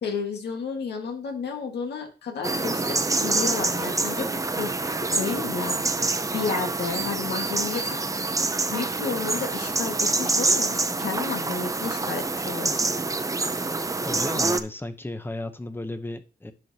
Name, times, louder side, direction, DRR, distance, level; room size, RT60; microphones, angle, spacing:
voice 1, 0.0-8.0 8.6-12.8, left 5 dB, 85° left, 3 dB, 1.8 m, -32 dB
sound 1, 2.4-14.6, right 3 dB, 20° right, 0.6 m, -26 dB
voice 2, 14.0-16.5, left 2 dB, 15° left, 9 dB, 0.9 m, -34 dB
10.5 x 6.3 x 2.8 m, 0.35 s
cardioid pair, 95°, 17 cm